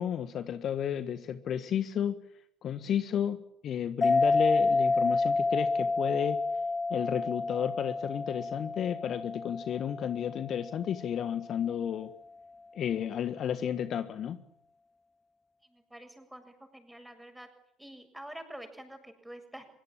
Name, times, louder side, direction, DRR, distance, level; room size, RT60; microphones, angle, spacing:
voice 1, 0.0-2.1 2.6-3.4 3.6-6.4 6.9-12.1 12.7-14.4, left 9 dB, 45° left, 12 dB, 1.6 m, -32 dB
sound 1, 4.0-11.1, left 3 dB, 20° left, 2.0 m, -29 dB
voice 2, 15.7-17.5 17.8-19.7, right 1 dB, 5° right, 7 dB, 7.3 m, -47 dB
24.5 x 23.5 x 8.8 m, 0.71 s
figure-of-eight pair, 65°, 0 cm